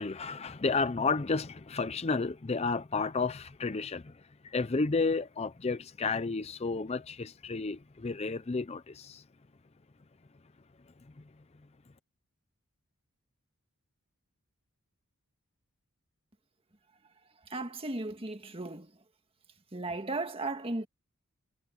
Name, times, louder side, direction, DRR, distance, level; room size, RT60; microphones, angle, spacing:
voice 1, 0.0-9.2, left 4 dB, 30° left, 0.5 m, -32 dB
voice 2, 17.5-18.9 19.7-20.9, right 2 dB, 25° right, 1.7 m, -35 dB
head